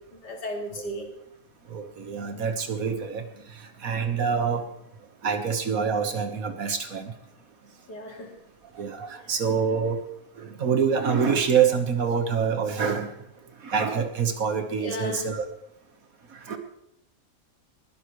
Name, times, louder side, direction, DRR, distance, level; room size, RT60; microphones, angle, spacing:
voice 1, 0.1-1.1 7.9-8.3 14.8-15.3, equal, 85° left, 1 dB, 3.0 m, -35 dB
voice 2, 1.7-3.3 3.8-4.6 5.2-7.1 8.8-10.0 10.4-13.1 13.6-15.5 16.3-16.6, right 6 dB, 60° right, 6 dB, 1.8 m, -26 dB
20.5 x 11.5 x 3.2 m, 0.76 s
omnidirectional pair, 1.8 m